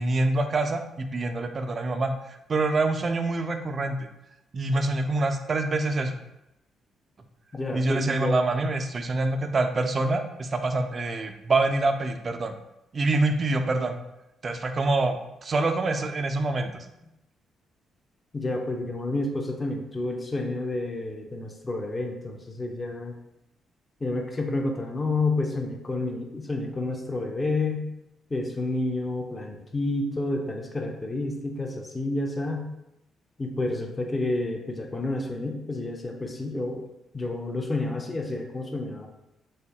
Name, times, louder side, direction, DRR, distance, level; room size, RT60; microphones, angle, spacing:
voice 1, 0.0-4.0 4.5-6.1 7.7-12.5 12.9-13.9 14.4-16.8, right 2 dB, 40° right, 7 dB, 0.4 m, -26 dB
voice 2, 7.5-8.4 18.3-23.2 24.0-27.9 28.3-32.7 33.4-36.8 37.1-39.1, left 2 dB, 25° left, 2 dB, 0.5 m, -29 dB
3.3 x 3.2 x 2.8 m, 0.89 s
figure-of-eight pair, 40°, 0 cm